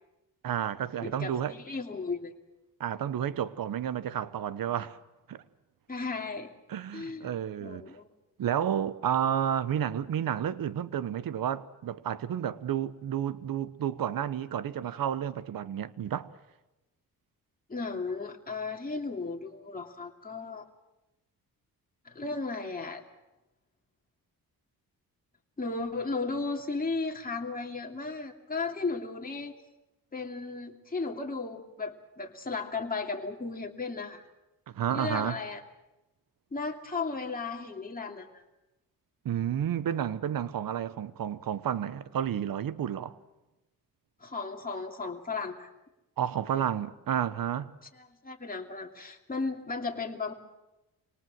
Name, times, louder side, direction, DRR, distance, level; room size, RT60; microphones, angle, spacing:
voice 1, 0.4-1.6 2.8-5.0 5.3-5.4 6.7-7.9 8.4-16.3 34.7-35.4 39.2-43.2 46.2-47.7, right 9 dB, 65° right, 1.1 m, -31 dB
voice 2, 1.0-2.3 5.9-6.5 6.9-7.4 7.6-8.1 17.7-20.7 22.0-23.0 25.6-29.5 30.1-34.2 34.9-35.6 36.5-38.4 44.2-45.7 46.5-46.6 48.0-50.3, left 3 dB, 25° left, 2.6 m, -35 dB
25.5 x 19.0 x 7.6 m
cardioid pair, 70°, 37 cm